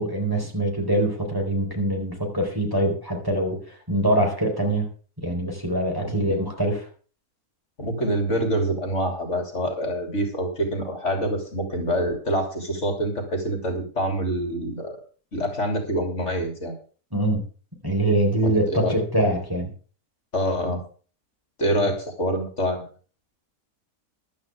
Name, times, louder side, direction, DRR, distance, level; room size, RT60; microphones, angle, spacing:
voice 1, 0.0-3.6 3.9-4.9 5.2-6.9 17.1-17.4 17.8-19.7 21.8-21.9, right 1 dB, 15° right, 0 dB, 4.2 m, -24 dB
voice 2, 6.0-6.4 7.8-15.0 15.3-16.7 18.4-19.0 20.3-20.8 21.6-22.9, equal, 50° left, 4 dB, 3.7 m, -26 dB
15.0 x 12.0 x 3.6 m, 0.40 s
omnidirectional pair, 1.6 m